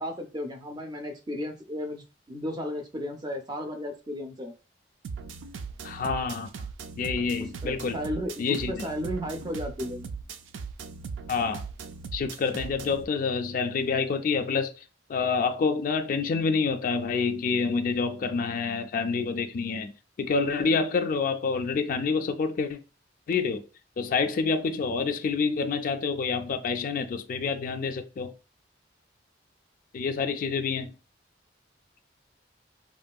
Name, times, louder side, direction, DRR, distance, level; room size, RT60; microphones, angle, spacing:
voice 1, 0.0-4.5 7.6-10.1, equal, 20° right, 0.4 m, -34 dB
sound 1, 5.0-13.0, right 5 dB, 85° right, 0.3 m, -39 dB
voice 2, 5.8-6.5 7.0-8.0 8.4-8.9 11.3-11.7 12.1-14.8 15.1-19.9 20.2-22.8 23.3-23.6 24.0-28.3 29.9-30.9, left 5 dB, 45° left, 0.3 m, -27 dB
3.0 x 2.6 x 2.2 m
head